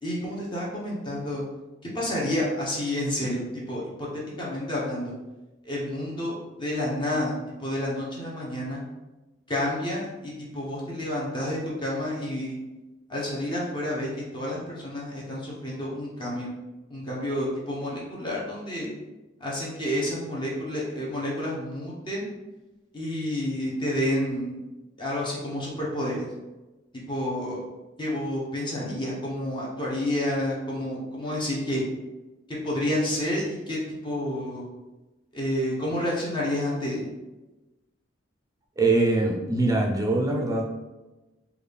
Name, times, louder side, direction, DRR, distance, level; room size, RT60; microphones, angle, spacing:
voice 1, 0.0-1.4 1.9-5.1 5.6-8.8 9.5-12.6 13.1-16.5 16.9-18.9 19.4-22.2 22.9-24.6 25.0-26.3 27.1-27.6 28.0-31.8 32.5-34.7 35.3-37.1, left 1 dB, 25° left, -5 dB, 0.7 m, -29 dB
voice 2, 38.8-40.6, right 2 dB, 20° right, 1 dB, 0.4 m, -23 dB
3.4 x 2.3 x 3.3 m, 1.1 s
head